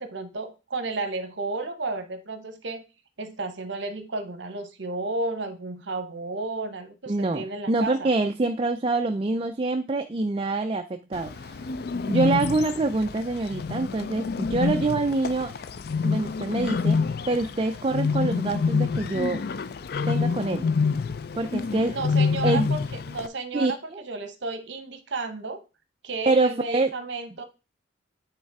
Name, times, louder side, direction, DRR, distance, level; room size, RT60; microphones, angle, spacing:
voice 1, 0.0-2.8 3.2-8.1 21.8-25.6 26.0-27.4, right 3 dB, 65° right, 9 dB, 0.9 m, -32 dB
voice 2, 7.1-11.6 12.1-15.5 16.0-17.0 17.3-19.4 20.1-20.7 21.4-22.0 22.4-22.7 23.5-24.0 26.3-26.9, right 2 dB, 30° right, 6 dB, 0.4 m, -25 dB
Bird, 11.1-23.3, left 5 dB, 50° left, 0.4 m, -27 dB
9.0 x 3.3 x 4.7 m, 0.30 s
head